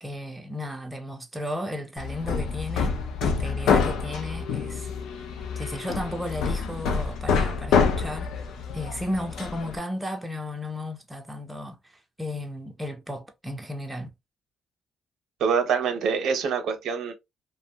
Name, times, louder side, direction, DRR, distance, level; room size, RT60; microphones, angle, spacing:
voice 1, 0.0-4.9 5.6-8.3 8.7-11.8 12.2-14.1, left 1 dB, 10° right, 0.5 m, -34 dB
Hammer, 2.0-9.8, left 5 dB, 80° left, 0.5 m, -27 dB
voice 2, 15.4-17.1, right 6 dB, 75° right, 0.7 m, -25 dB
2.5 x 2.1 x 2.7 m
cardioid pair, 90°, 0 cm